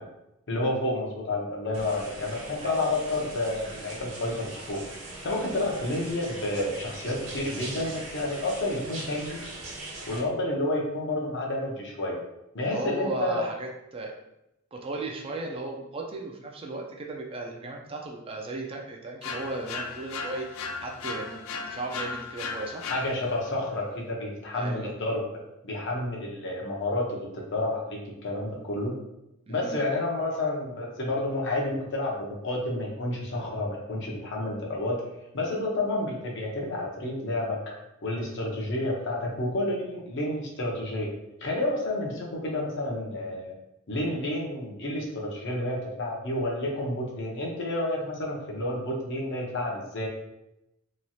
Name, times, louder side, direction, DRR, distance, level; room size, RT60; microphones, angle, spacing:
voice 1, 0.5-4.8 5.2-9.4 10.1-12.2 12.5-13.4 22.8-25.2 25.6-28.9 29.5-35.0 35.3-41.1 41.4-43.5 43.9-50.1, left 1 dB, 60° left, -2 dB, 0.7 m, -30 dB
sound 1, 1.7-10.2, right 2 dB, 70° right, 0.9 m, -41 dB
voice 2, 12.6-14.1 14.7-22.9 24.5-25.0 29.5-29.8, right 2 dB, 25° right, 1 dB, 0.3 m, -36 dB
sound 2, 19.2-23.6, left 4 dB, 75° left, 0.3 m, -36 dB
3.0 x 2.4 x 2.7 m, 0.87 s
head